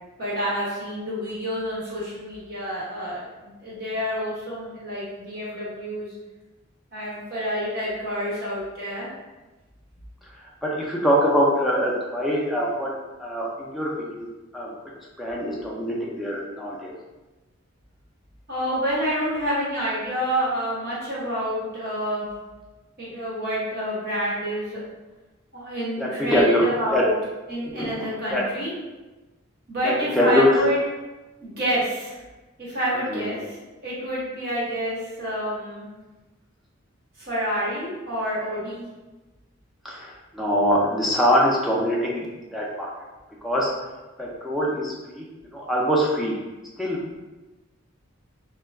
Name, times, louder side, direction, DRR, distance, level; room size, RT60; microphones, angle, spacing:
voice 1, 0.2-6.1 6.9-9.1 18.5-22.3 23.0-24.8 25.5-27.1 27.5-28.7 29.7-30.8 31.4-32.2 32.6-35.9 37.2-38.8, equal, 45° right, -8 dB, 1.1 m, -28 dB
voice 2, 10.6-12.9 13.2-14.3 14.5-14.7 15.2-16.9 26.0-26.6 26.9-27.0 27.7-27.9 28.3-28.4 29.8-30.5 33.1-33.3 39.8-42.3 42.5-42.9 43.4-43.7 44.2-46.4 46.8-47.0, equal, ahead, -5 dB, 0.4 m, -23 dB
2.2 x 2.2 x 3.3 m, 1.1 s
head